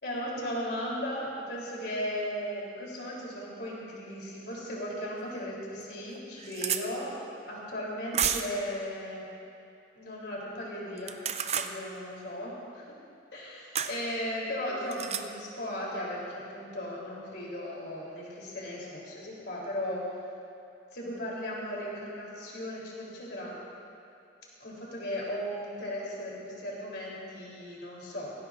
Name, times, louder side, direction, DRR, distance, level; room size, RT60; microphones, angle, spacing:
voice 1, 0.0-7.1 7.5-9.3 10.0-11.2 11.5-13.0 13.3-20.2 20.9-23.5 24.6-28.3, equal, 60° left, -4 dB, 3.4 m, -36 dB
sound 1, 5.2-5.3 5.8-5.9 6.1-6.8 8.1-8.6 11.0-11.7 13.8-14.0 14.9-15.2, right 8 dB, 35° right, 0.5 m, -30 dB
18.5 x 15.5 x 2.5 m, 2.7 s
head